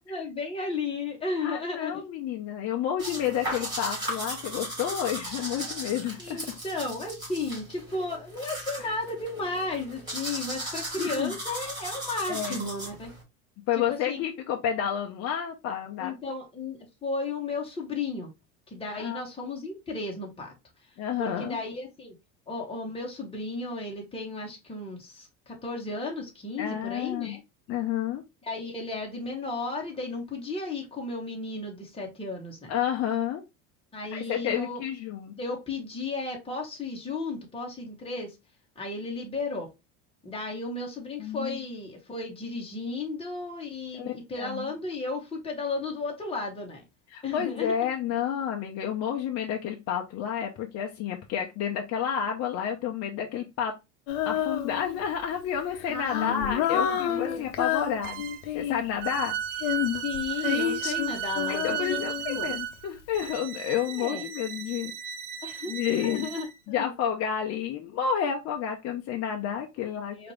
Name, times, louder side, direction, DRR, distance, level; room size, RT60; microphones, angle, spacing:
voice 1, 0.0-2.1 6.2-13.1 13.7-14.2 16.0-18.3 18.7-20.5 21.2-22.1 22.5-27.4 28.4-32.7 33.9-34.8 35.3-38.3 38.8-39.7 40.2-46.8 47.2-47.9 55.9-57.5 60.0-62.0 62.3-62.5 63.9-64.2 65.4-66.9 70.1-70.3, left 3 dB, 15° left, 1.8 m, -34 dB
voice 2, 1.4-6.4 8.8-8.9 11.0-11.3 12.3-12.7 13.7-16.1 19.0-19.2 21.0-21.6 26.6-27.4 27.7-28.2 32.7-33.4 34.1-35.3 41.2-41.6 43.9-44.7 47.1-53.7 54.3-58.2 58.5-59.4 61.5-64.9 65.7-66.3 66.7-70.2, left 9 dB, 50° left, 0.9 m, -30 dB
sound 1, 3.0-13.2, right 1 dB, 15° right, 3.2 m, -37 dB
Female singing, 54.1-55.1 55.7-59.0 59.6-62.7, left 10 dB, 75° left, 1.0 m, -29 dB
sound 2, 58.0-58.5 59.0-66.5, right 10 dB, 70° right, 1.0 m, -35 dB
4.8 x 3.0 x 3.4 m
supercardioid pair, 110°, 33 cm